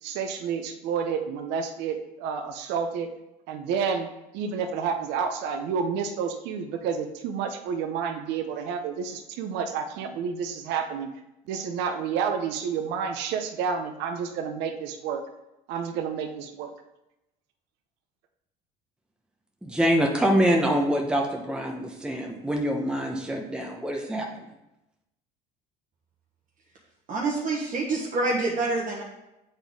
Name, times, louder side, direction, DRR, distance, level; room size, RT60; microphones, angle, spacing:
voice 1, 0.0-3.1 3.5-4.1 4.3-11.1 11.5-15.2 15.7-16.7, right 6 dB, 75° right, 6 dB, 0.7 m, -30 dB
voice 2, 19.6-24.3, equal, 5° right, 1 dB, 0.9 m, -25 dB
voice 3, 27.1-29.0, right 3 dB, 45° right, -3 dB, 1.2 m, -26 dB
8.0 x 3.9 x 3.5 m, 0.92 s
supercardioid pair, 85°, 18 cm